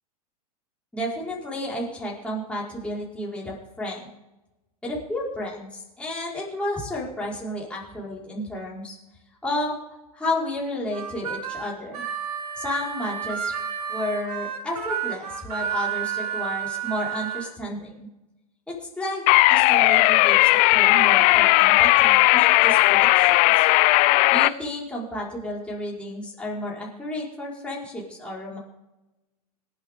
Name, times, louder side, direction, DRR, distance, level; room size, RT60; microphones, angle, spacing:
voice 1, 0.9-4.1 4.8-9.0 9.4-9.8 10.1-12.0 12.6-13.5 13.9-18.1 18.7-23.7 24.3-28.6, left 1 dB, 5° left, -5 dB, 5.1 m, -32 dB
Harmonica, 10.9-17.5, right 8 dB, 75° right, 2.7 m, -31 dB
sound 1, 19.3-24.5, left 20 dB, 40° left, 0.5 m, -17 dB
27.0 x 9.1 x 3.8 m, 0.98 s
hypercardioid pair, 100°, 20 cm